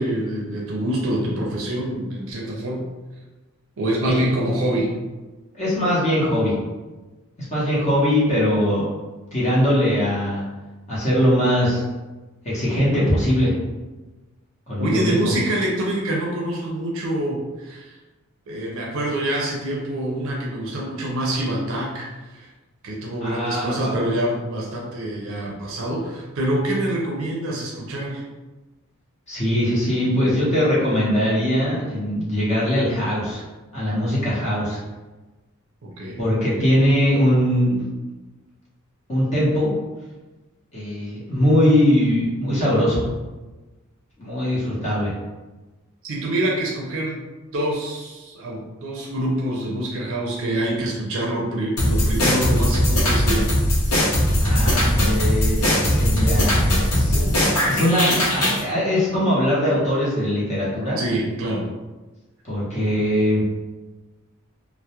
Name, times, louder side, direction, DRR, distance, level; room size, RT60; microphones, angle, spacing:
voice 1, 0.0-2.9 3.8-5.0 14.8-18.0 18.5-22.5 22.8-28.2 35.8-36.2 46.0-47.2 47.5-53.5 61.0-61.6, right 1 dB, 60° right, -2 dB, 0.5 m, -26 dB
voice 2, 5.5-6.6 7.4-8.9 9.3-10.4 10.9-11.8 12.4-13.5 14.7-15.3 23.2-24.0 29.3-33.4 33.7-34.8 36.2-37.8 39.1-39.7 40.7-43.0 44.2-45.1 54.4-57.2 57.7-61.0 62.4-63.4, equal, 30° left, -8 dB, 0.8 m, -21 dB
sound 1, 51.8-58.6, left 1 dB, 90° left, 0.7 m, -19 dB
2.2 x 2.0 x 2.8 m, 1.2 s
head